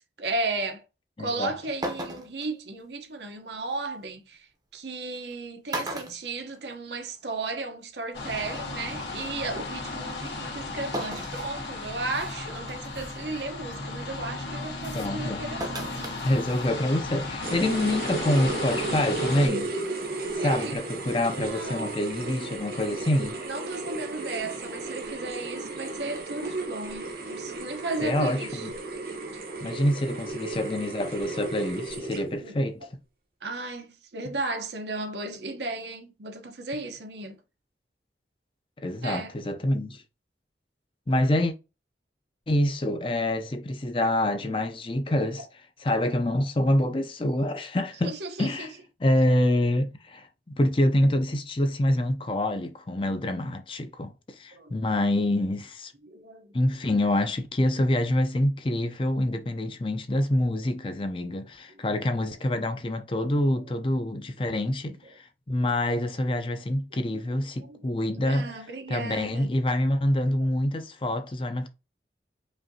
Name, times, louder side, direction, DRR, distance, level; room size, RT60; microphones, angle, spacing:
voice 1, 0.2-0.8 1.2-4.5 4.7-16.0 17.6-17.8 20.4-20.8 21.4-22.0 23.4-28.7 32.4-32.6 33.4-37.4 39.0-39.3 48.0-48.7 54.5-54.7 56.0-56.5 64.4-64.5 67.1-67.2 67.6-69.5, right 3 dB, 80° right, 0.9 m, -35 dB
voice 2, 1.2-1.5 14.9-15.6 16.2-19.7 20.3-23.4 28.0-28.7 29.6-32.9 38.8-40.0 41.1-41.5 42.5-45.5 45.8-48.7 49.0-55.9 56.5-68.6 68.9-71.7, left 1 dB, 30° left, 0.5 m, -26 dB
sound 1, 1.3-1.4 1.8-2.5 4.1-4.2 5.2-5.3 5.7-7.1 7.4-7.5 8.7-8.8 10.9-11.4 12.0-12.1 12.7-13.0 15.6-16.2 16.5-16.6, right 1 dB, 20° right, 0.7 m, -34 dB
sound 2, 8.1-19.5, left 3 dB, 90° left, 1.7 m, -35 dB
sound 3, 17.4-32.5, right 3 dB, 55° right, 0.9 m, -34 dB
5.1 x 2.7 x 2.7 m
head